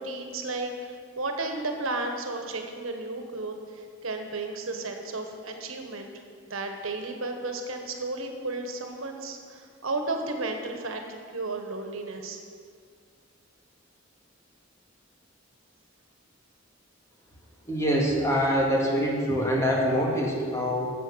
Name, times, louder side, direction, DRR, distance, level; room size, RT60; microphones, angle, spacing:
voice 1, 0.0-6.1 6.5-12.4, right 2 dB, 85° right, 4 dB, 1.4 m, -33 dB
voice 2, 17.7-20.9, equal, 15° left, -3 dB, 2.2 m, -25 dB
12.5 x 8.1 x 6.3 m, 2.1 s
head